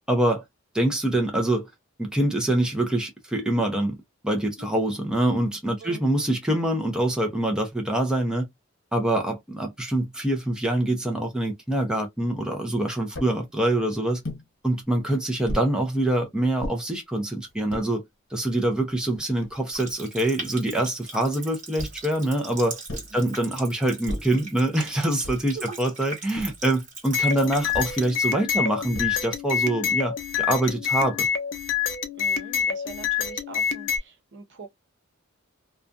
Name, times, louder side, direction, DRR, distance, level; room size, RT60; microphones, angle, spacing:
voice 1, 0.1-0.4 0.7-1.7 2.0-4.0 4.2-8.5 8.9-14.2 14.6-18.0 18.3-22.8 23.1-31.3, right 1 dB, 5° right, 0.5 m, -25 dB
sound 1, 13.1-13.4 14.2-14.5 15.5-15.7 16.6-16.8 17.5-17.9 18.6-18.7 18.9-20.0 21.8-22.1 22.9-23.2 24.1-24.4 25.2-25.6 26.3-26.7 27.7-28.0 28.9-29.4, left 1 dB, 90° left, 1.0 m, -35 dB
Water tap faucet, 19.7-28.1, right 3 dB, 40° right, 1.2 m, -40 dB
sound 2, 27.1-34.0, left 7 dB, 65° left, 0.6 m, -27 dB
voice 2, 32.1-34.7, right 4 dB, 60° right, 0.9 m, -42 dB
2.4 x 2.2 x 2.5 m
head